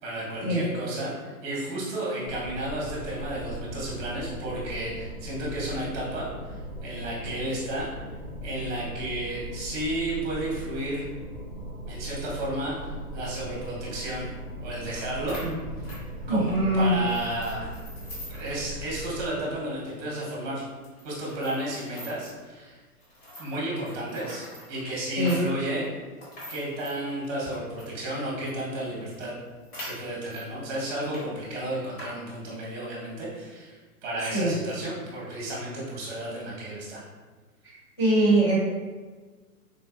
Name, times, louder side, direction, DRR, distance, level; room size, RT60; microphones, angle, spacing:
voice 1, 0.0-7.9 8.4-11.0 11.9-14.3 14.6-15.4 16.3-17.7 18.3-20.6 21.0-22.8 23.4-25.9 26.5-29.3 29.8-33.8 34.0-37.0, right 1 dB, 20° right, -5 dB, 1.0 m, -32 dB
sound 1, 2.2-19.3, right 1 dB, 90° left, 1.5 m, -39 dB
sound 2, 15.0-15.1 15.3-16.6 17.1-18.6 18.9-19.0 19.4-19.5 20.1-20.2 20.8-22.4 23.0-28.0 28.5-28.6 28.8-28.9 29.1-30.5 30.9-31.2 31.5-32.1, equal, 40° left, 1.3 m, -44 dB
voice 2, 16.3-16.9 25.2-25.4 34.3-34.6 38.0-38.6, right 1 dB, 20° left, -12 dB, 0.4 m, -22 dB
3.9 x 2.4 x 2.5 m, 1.3 s
hypercardioid pair, 145°, 46 cm